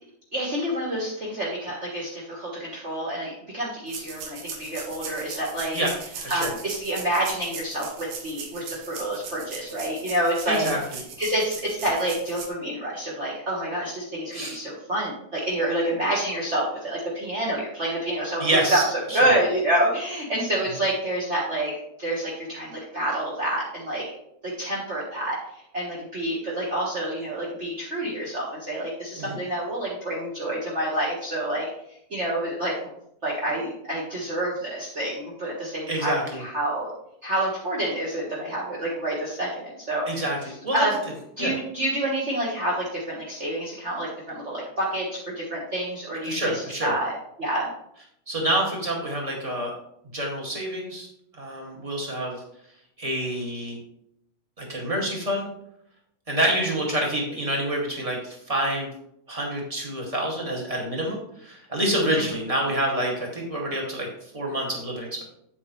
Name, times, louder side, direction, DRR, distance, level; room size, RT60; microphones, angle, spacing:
voice 1, 0.3-5.8 6.3-10.7 11.2-21.7 22.0-24.0 24.4-25.4 25.7-31.6 32.1-32.7 33.2-36.9 37.2-40.1 40.7-40.9 41.4-47.7, right 1 dB, 40° right, -5 dB, 0.9 m, -28 dB
sound 1, 3.9-12.5, right 6 dB, 80° right, 2.9 m, -39 dB
voice 2, 6.2-6.5 10.5-10.8 14.3-14.6 18.4-18.8 19.1-19.3 29.2-29.4 35.9-36.4 40.1-40.8 41.4-41.5 46.2-46.9 48.3-49.7 50.1-51.1 51.3-52.4 53.0-53.8 54.6-55.5 56.3-58.9 59.3-65.2, right 1 dB, 15° right, -1 dB, 1.5 m, -27 dB
9.1 x 8.3 x 3.2 m, 0.75 s
omnidirectional pair, 3.6 m